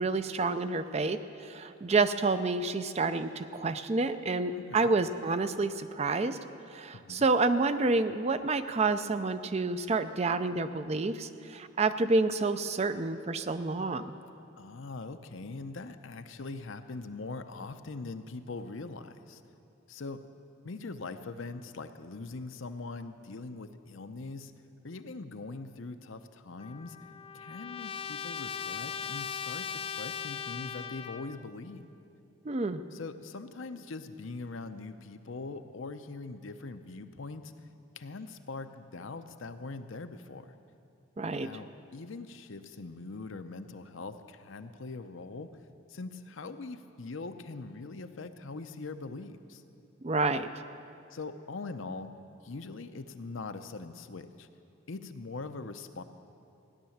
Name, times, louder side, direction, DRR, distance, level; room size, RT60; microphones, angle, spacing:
voice 1, 0.0-6.4 6.7-14.1 32.5-32.8 41.2-41.5 50.0-50.5, right 3 dB, 30° right, 11 dB, 0.5 m, -29 dB
voice 2, 4.5-4.9 6.9-7.3 14.6-19.4 19.9-20.2 20.6-24.5 24.8-27.0 27.3-31.8 32.9-37.5 38.0-40.5 41.4-45.5 45.9-49.6 51.1-52.1 52.4-54.5 54.9-56.0, left 3 dB, 75° left, 9 dB, 0.7 m, -42 dB
Trumpet, 26.6-31.5, left 7 dB, 25° left, 0.3 m, -39 dB
16.5 x 10.5 x 7.2 m, 2.6 s
head